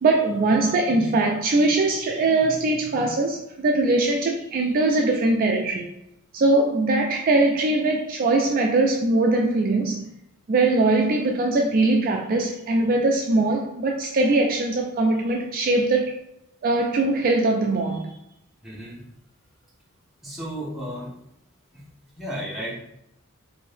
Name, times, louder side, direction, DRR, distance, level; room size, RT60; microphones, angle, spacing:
voice 1, 0.0-5.9 6.3-10.0 10.5-16.1 16.6-18.1, right 2 dB, 40° right, 1 dB, 0.3 m, -21 dB
voice 2, 18.6-19.0 20.2-21.1 21.7-21.8 22.1-22.7, equal, ahead, -6 dB, 0.8 m, -33 dB
2.7 x 2.6 x 3.3 m, 0.81 s
head